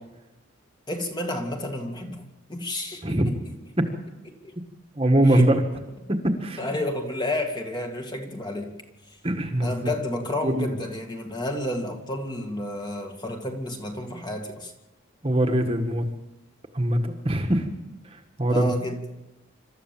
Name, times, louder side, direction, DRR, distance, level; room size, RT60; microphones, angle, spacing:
voice 1, 0.9-2.2 2.5-3.2 4.4-4.6 5.3-5.5 6.6-8.7 9.1-9.2 9.6-14.7 18.5-19.0, left 1 dB, 20° left, 3 dB, 2.2 m, -31 dB
voice 2, 4.9-5.6 6.1-6.6 9.2-9.9 10.4-10.7 15.2-16.1 16.7-17.7 18.1-18.7, right 1 dB, 25° right, 4 dB, 1.6 m, -22 dB
27.0 x 13.5 x 7.4 m, 1.0 s
head